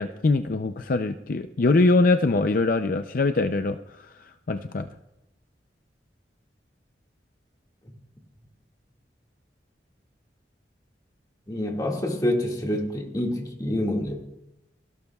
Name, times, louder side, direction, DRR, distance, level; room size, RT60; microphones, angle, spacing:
voice 1, 0.0-4.9, left 3 dB, 50° left, 8 dB, 0.5 m, -23 dB
voice 2, 11.5-14.2, left 1 dB, 20° left, 1 dB, 2.0 m, -27 dB
29.0 x 12.0 x 2.4 m, 0.92 s
head